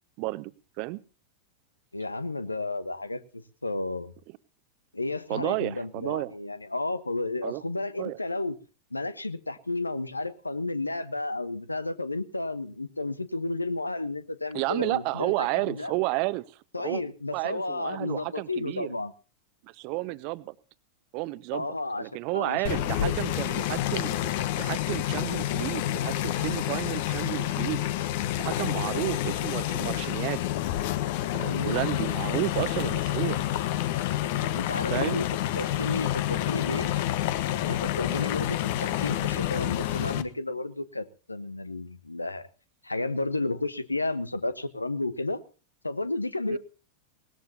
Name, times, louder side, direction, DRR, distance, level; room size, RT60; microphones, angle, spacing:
voice 1, 0.2-0.5 0.8-1.0 5.3-6.3 7.4-7.6 8.0-8.2 14.5-16.4 16.8-17.0 17.3-19.0 19.6-20.5 21.1-21.7 22.0-24.3 24.6-27.9 28.4-30.4 31.3-33.4 34.9-35.2 38.0-38.3 46.5-46.6, right 22 dB, 45° right, 17 dB, 0.9 m, -31 dB
voice 2, 1.9-4.1 4.9-8.6 8.9-15.9 16.7-19.1 21.5-23.1 31.5-31.9 34.5-35.3 35.5-36.9 37.6-42.5 42.8-45.4 45.8-46.6, left 2 dB, 85° left, 14 dB, 1.2 m, -32 dB
sound 1, 22.6-40.2, left 13 dB, 50° left, 1.1 m, -28 dB
20.5 x 19.0 x 2.8 m, 0.35 s
figure-of-eight pair, 90°, 0 cm